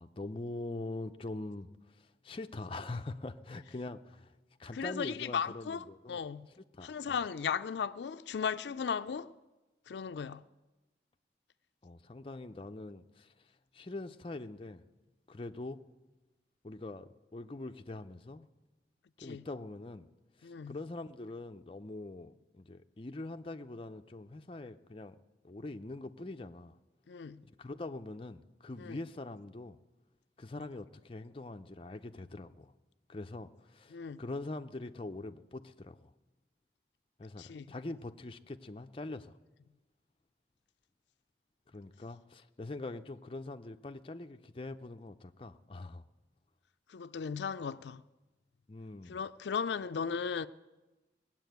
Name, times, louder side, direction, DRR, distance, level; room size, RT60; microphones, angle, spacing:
voice 1, 0.0-6.2 6.6-7.2 11.8-14.8 15.3-15.8 16.6-18.5 19.2-20.1 20.4-25.2 25.4-26.8 27.4-29.8 30.4-32.7 33.1-36.1 37.2-39.4 41.7-46.0 48.7-49.2, left 2 dB, 30° left, 0.5 m, -43 dB
voice 2, 4.7-6.5 6.8-9.3 9.9-10.4 19.2-19.4 20.4-20.8 27.1-27.4 28.8-29.0 33.9-34.2 37.4-37.7 46.9-48.0 49.1-50.5, left 6 dB, 85° left, 0.4 m, -36 dB
19.0 x 7.5 x 9.2 m
head